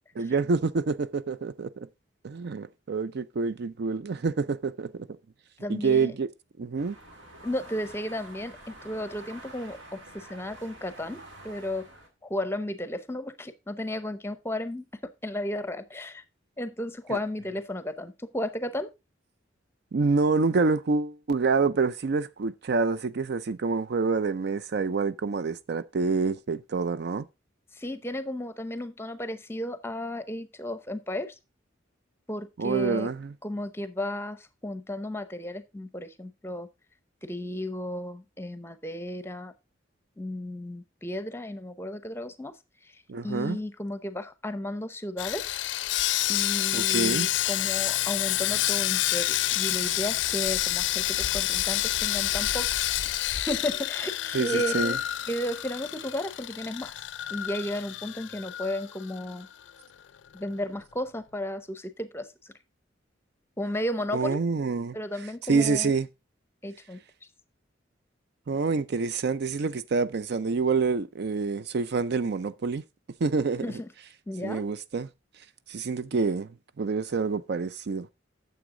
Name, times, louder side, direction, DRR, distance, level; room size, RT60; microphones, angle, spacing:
voice 1, 0.2-1.9 2.2-5.1 5.7-6.3 6.6-7.0 17.1-17.2 19.9-27.3 32.6-33.3 43.1-43.6 46.7-47.3 54.3-55.0 64.1-65.0 65.5-66.1 68.5-72.8 73.2-73.7 74.4-75.1 75.7-76.5 76.8-78.1, right 4 dB, 60° right, 0.5 m, -27 dB
voice 2, 5.6-6.1 7.4-11.2 11.4-11.9 12.2-16.2 16.6-18.9 27.8-31.3 32.3-33.1 33.4-36.7 37.2-39.5 40.2-42.5 43.2-45.5 46.3-52.7 53.3-56.9 57.3-59.5 60.3-62.5 63.6-64.4 64.9-65.9 66.6-67.0 73.6-73.9 74.3-74.6, left 1 dB, 15° left, 0.8 m, -34 dB
sound 1, 6.8-12.1, right 1 dB, 75° right, 2.4 m, -48 dB
Sawing, 45.2-59.4 59.7-59.9 60.3-60.5, left 14 dB, 65° left, 0.4 m, -28 dB
9.3 x 7.1 x 3.7 m
head